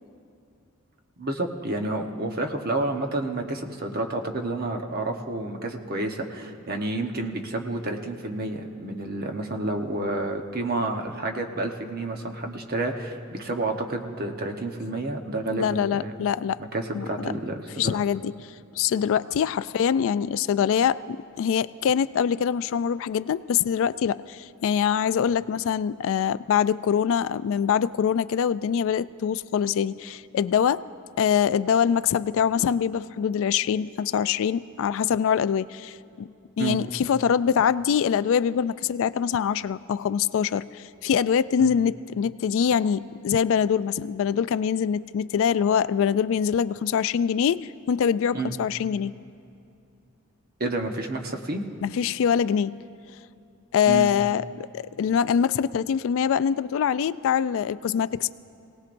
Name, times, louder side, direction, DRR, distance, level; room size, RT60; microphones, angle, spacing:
voice 1, 1.2-16.1 16.6-18.0 36.6-36.8 41.6-41.7 48.3-48.5 50.6-51.6 53.9-54.1, right 2 dB, 45° right, 3 dB, 1.1 m, -30 dB
voice 2, 15.4-16.6 16.9-17.3 17.8-30.8 31.2-36.3 36.6-49.1 51.8-52.7 53.7-58.3, left 8 dB, 60° left, 16 dB, 0.3 m, -24 dB
26.0 x 18.0 x 2.6 m, 2.5 s
head